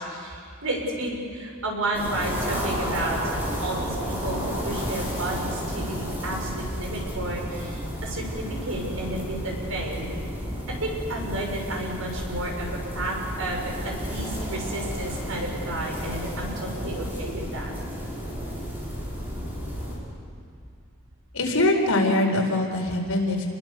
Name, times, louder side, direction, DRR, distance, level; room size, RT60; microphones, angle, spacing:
voice 1, 0.0-10.1 10.7-17.7, right 1 dB, 75° right, 0 dB, 6.3 m, -32 dB
sound 1, 1.9-20.0, equal, 10° right, 5.8 m, -32 dB
voice 2, 21.3-23.5, left 2 dB, 85° left, 1 dB, 4.6 m, -23 dB
29.0 x 21.5 x 6.9 m, 2.4 s
head